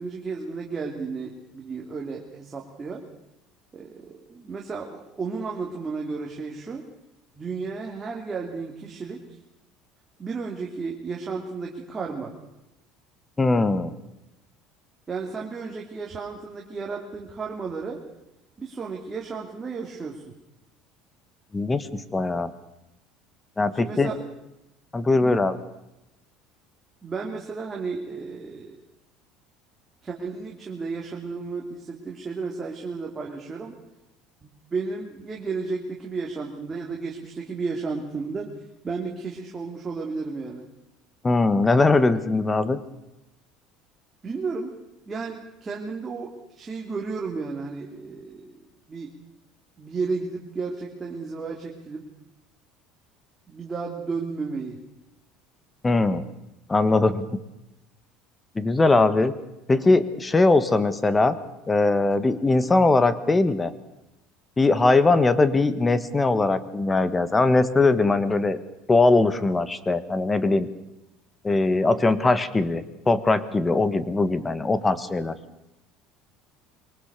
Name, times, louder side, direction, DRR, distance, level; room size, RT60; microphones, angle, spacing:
voice 1, 0.0-3.0 3.7-6.9 7.4-9.4 10.2-12.3 15.1-18.0 18.6-20.3 23.7-24.2 25.2-25.4 27.0-28.8 30.0-33.8 34.4-38.5 38.8-40.6 44.2-44.7 45.1-48.6 48.9-49.1 49.8-52.1 53.5-54.8, right 4 dB, 25° right, -1 dB, 2.8 m, -33 dB
voice 2, 13.4-13.9 21.5-22.5 23.6-24.1 24.9-25.6 41.2-42.8 55.8-56.2 56.7-57.2 58.5-59.3 59.7-61.4 61.7-63.7 64.6-68.6 68.9-70.7 71.4-75.3, left 3 dB, 15° left, 14 dB, 1.5 m, -21 dB
23.0 x 19.0 x 6.8 m, 0.92 s
supercardioid pair, 110°, 0 cm